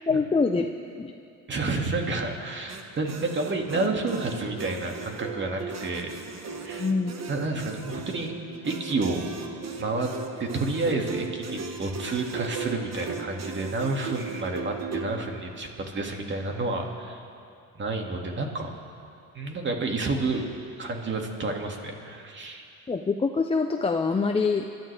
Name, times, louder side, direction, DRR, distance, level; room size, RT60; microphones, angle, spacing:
voice 1, 0.1-0.7 1.0-1.1 6.8-7.1 22.9-24.7, left 4 dB, 15° left, 2 dB, 0.7 m, -25 dB
voice 2, 1.5-6.1 6.6-6.9 7.3-8.3 8.6-9.3 9.8-10.1 10.4-17.2 17.7-18.7 19.3-20.4 20.8-22.6, right 3 dB, 35° right, 2 dB, 2.3 m, -30 dB
sound 1, 2.7-15.2, right 5 dB, 50° right, 1.5 m, -37 dB
27.5 x 13.0 x 3.5 m, 2.4 s
cardioid pair, 105°, 34 cm